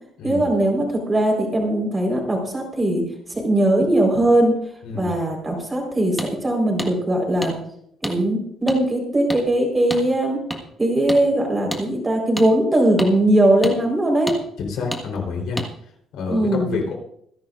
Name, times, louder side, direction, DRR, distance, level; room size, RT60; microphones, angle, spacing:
voice 1, 0.2-3.0 3.3-4.5 4.9-7.5 8.0-10.4 10.8-14.3 16.3-16.8, right 1 dB, 15° right, 1 dB, 4.3 m, -20 dB
voice 2, 4.8-5.1 14.6-15.6 16.1-16.9, left 4 dB, 75° left, 1 dB, 3.8 m, -28 dB
sound 1, 6.2-6.3 6.8-6.9 7.4-7.5 8.0-8.2 8.7-8.8 9.3-9.4 9.9-10.0 10.5-10.6 11.1-11.2 11.7-11.8 12.4-12.5 13.0-13.1 13.6-13.8 14.3-14.4 14.9-15.0 15.6-15.7, left 1 dB, 5° left, 1.6 m, -28 dB
26.5 x 10.5 x 2.5 m, 0.70 s
cardioid pair, 150°, 0 cm